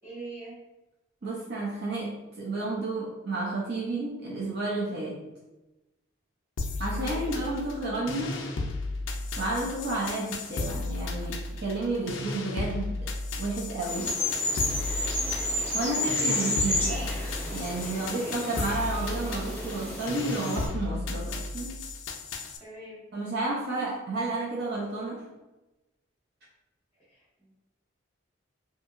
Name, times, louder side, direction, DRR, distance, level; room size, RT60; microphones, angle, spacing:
voice 1, 0.0-0.6 6.9-7.4 15.9-16.4 22.6-23.1 27.1-27.5, right 2 dB, 10° right, -9 dB, 1.2 m, -43 dB
voice 2, 1.2-5.2 6.8-8.5 9.4-14.2 15.7-17.2 17.5-21.8 23.1-25.3, right 2 dB, 55° right, -4 dB, 0.5 m, -31 dB
sound 1, 6.6-22.6, left 2 dB, 70° left, 0.4 m, -34 dB
sound 2, 13.8-20.7, left 2 dB, 10° left, 0.6 m, -31 dB
2.7 x 2.7 x 2.4 m, 1.0 s
head